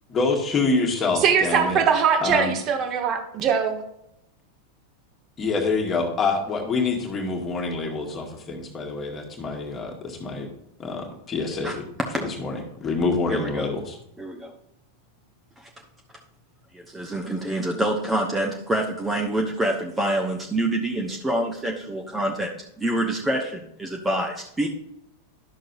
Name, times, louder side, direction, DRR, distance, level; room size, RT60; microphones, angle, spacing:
voice 1, 0.1-1.8 2.2-2.5 5.4-10.5 10.8-11.9 12.2-14.0, left 3 dB, 25° left, 1 dB, 1.7 m, -26 dB
voice 2, 1.2-3.8, right 7 dB, 35° right, 5 dB, 1.3 m, -21 dB
voice 3, 13.3-13.7 14.2-14.5 16.7-24.7, right 1 dB, 10° right, 1 dB, 0.9 m, -26 dB
11.0 x 6.4 x 2.6 m, 0.80 s
figure-of-eight pair, 90°, 0 cm